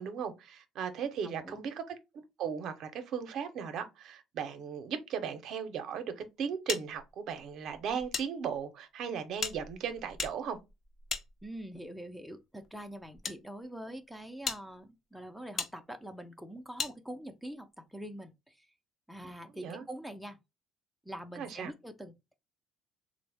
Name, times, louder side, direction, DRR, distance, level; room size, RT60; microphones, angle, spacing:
voice 1, 0.0-10.6 19.6-19.9 21.4-21.7, right 7 dB, 60° right, 0.6 m, -37 dB
voice 2, 1.2-1.6 11.4-18.7 19.1-20.4 21.1-22.3, right 1 dB, ahead, 0.4 m, -44 dB
sound 1, 6.7-8.3 8.5-8.6 9.4-11.8 12.6-13.4 13.9-14.0 14.4-14.6 15.6-15.7 16.8-16.9, left 5 dB, 45° left, 0.6 m, -38 dB
3.4 x 2.0 x 3.3 m
cardioid pair, 120°, 0 cm